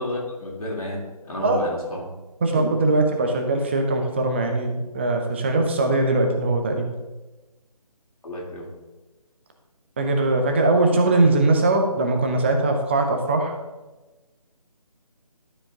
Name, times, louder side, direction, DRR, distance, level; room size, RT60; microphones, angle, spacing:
voice 1, 0.0-2.1 8.2-8.7, left 1 dB, 65° left, -4 dB, 2.9 m, -31 dB
voice 2, 2.4-6.9 10.0-13.5, right 2 dB, 20° right, 4 dB, 0.6 m, -21 dB
12.0 x 5.0 x 3.6 m, 1.1 s
figure-of-eight pair, 155°, 20 cm